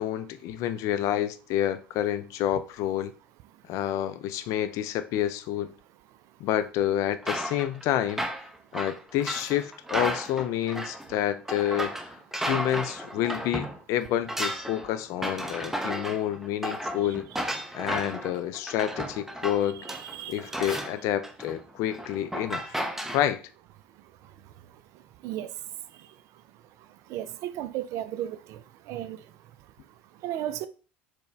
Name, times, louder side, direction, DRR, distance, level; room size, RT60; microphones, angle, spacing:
voice 1, 0.0-3.1 3.7-5.7 6.4-8.3 8.7-17.2 17.7-19.9 20.3-22.8 23.1-23.4, left 11 dB, 55° left, 0.4 m, -29 dB
voice 2, 6.1-6.4 17.0-17.2 19.6-20.8 22.9-23.1 23.8-30.7, right 12 dB, 55° right, 0.4 m, -38 dB
sound 1, 7.2-13.8 14.0-23.2, right 1 dB, 5° right, 0.7 m, -33 dB
4.3 x 2.2 x 3.1 m
hypercardioid pair, 70°, 6 cm